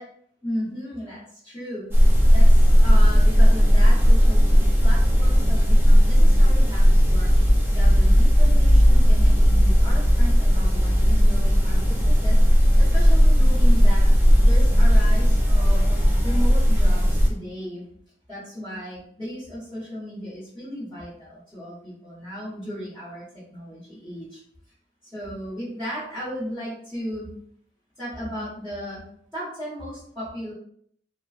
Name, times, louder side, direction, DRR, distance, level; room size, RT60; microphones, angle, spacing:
voice 1, 0.4-4.5 4.8-7.3 7.7-12.4 12.8-14.1 14.4-17.8 18.3-24.4 25.1-27.3 28.0-29.0 29.3-30.5, equal, 5° left, -14 dB, 1.5 m, -35 dB
sound 1, 1.9-17.3, equal, 10° right, 0.6 m, -16 dB
4.2 x 2.3 x 2.5 m, 0.65 s
head